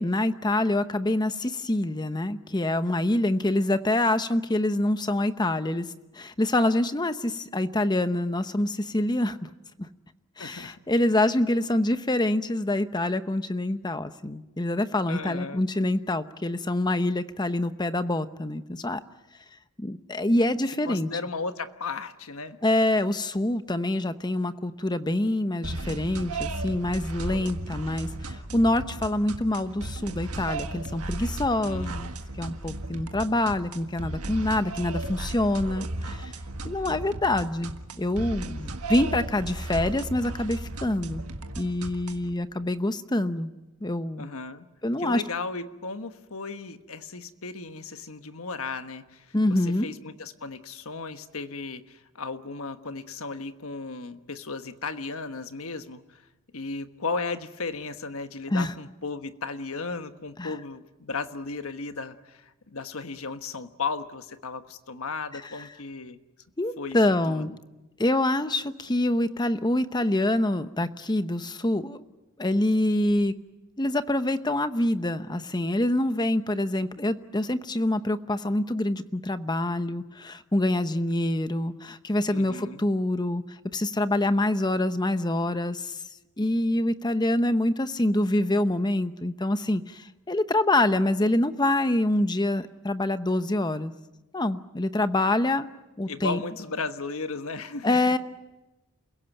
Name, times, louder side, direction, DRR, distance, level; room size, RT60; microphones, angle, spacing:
voice 1, 0.0-5.9 6.1-9.5 9.8-9.9 10.4-19.0 19.8-21.1 22.6-36.3 36.6-41.2 41.6-43.5 43.8-44.3 44.8-45.2 49.3-49.9 58.5-58.7 60.4-60.5 66.6-67.5 68.0-72.0 72.4-73.3 73.8-83.4 83.7-85.9 86.4-93.9 94.3-95.7 96.0-96.4 97.8-98.2, left 1 dB, 20° left, 11 dB, 0.9 m, -26 dB
voice 2, 10.4-10.8 11.2-11.3 15.1-15.7 20.8-22.6 31.5-32.0 44.2-44.7 45.0-56.2 56.5-66.2 66.8-67.0 67.3-67.6 82.3-82.9 96.1-98.2, left 4 dB, 65° left, 9 dB, 1.3 m, -35 dB
sound 1, 25.6-42.3, right 2 dB, 80° right, 1.7 m, -35 dB
29.0 x 16.5 x 9.1 m, 1.0 s
head